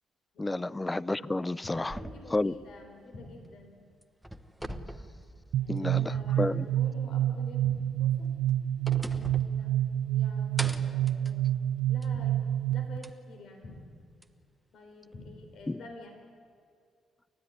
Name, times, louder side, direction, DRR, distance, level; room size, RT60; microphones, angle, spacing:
voice 1, 0.4-2.0 2.3-2.5 5.7-6.7 15.7-15.8, left 2 dB, 15° left, 0.6 m, -31 dB
sound 1, 1.6-2.1 3.1-3.6 4.6-5.1 6.1-6.6 7.6-8.1 9.1-9.6 10.6-11.1 12.1-12.6 13.6-14.1 15.1-15.6, left 2 dB, 50° left, 5.0 m, -48 dB
voice 2, 1.7-3.8 5.6-8.3 9.0-10.5 10.8-11.5 11.9-12.4 12.7-13.9 14.7-16.1, left 2 dB, 70° left, 3.8 m, -50 dB
sound 2, 1.9-3.7 4.0-6.0 6.4-6.5 8.1-10.2 10.6-12.2 13.0-13.1 14.2-14.3, right 1 dB, 5° right, 1.2 m, -43 dB
sound 3, 5.5-13.1, right 11 dB, 85° right, 0.5 m, -28 dB
29.5 x 13.5 x 9.9 m
cardioid pair, 90°, 0 cm